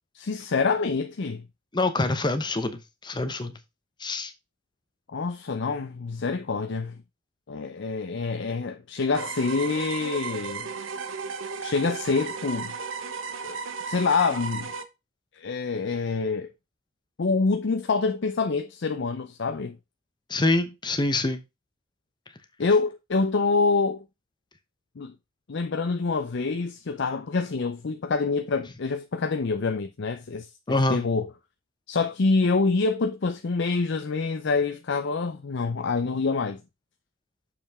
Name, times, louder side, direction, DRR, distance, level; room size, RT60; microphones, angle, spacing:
voice 1, 0.1-1.4 5.1-7.0 7.5-10.7 11.6-12.7 13.4-14.7 15.3-16.5 17.2-19.8 22.6-24.0 25.0-25.1 25.5-31.3 31.9-36.6, left 4 dB, 60° left, 0.6 m, -26 dB
voice 2, 1.7-3.6 4.0-4.3 20.3-21.4 30.7-31.0, left 2 dB, 20° left, 0.8 m, -25 dB
sound 1, 9.1-14.8, right 5 dB, 70° right, 0.8 m, -35 dB
6.9 x 5.4 x 3.5 m
head